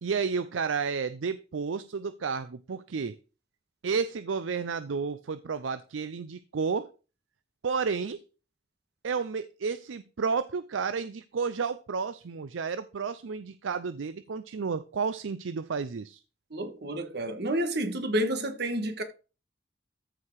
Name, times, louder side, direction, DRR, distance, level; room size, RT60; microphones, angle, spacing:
voice 1, 0.0-3.2 3.8-6.9 7.6-8.2 9.0-16.2, right 5 dB, 85° right, 0.5 m, -31 dB
voice 2, 16.5-19.0, right 1 dB, 55° right, 1.6 m, -30 dB
14.0 x 4.8 x 4.7 m
head